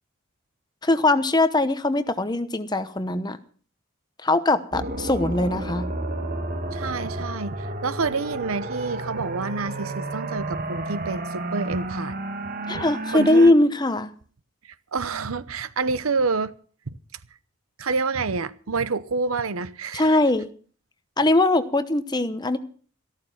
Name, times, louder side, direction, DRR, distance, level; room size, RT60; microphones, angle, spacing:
voice 1, 0.8-3.4 4.2-5.9 12.7-14.1 19.9-20.5 21.2-22.6, left 2 dB, 20° left, 0.9 m, -21 dB
sound 1, 4.7-13.5, right 2 dB, 45° right, 1.5 m, -31 dB
voice 2, 6.7-12.2 12.7-12.8 13.1-13.6 14.6-16.5 17.8-20.2, right 4 dB, 85° right, 0.8 m, -28 dB
14.0 x 13.5 x 5.8 m
head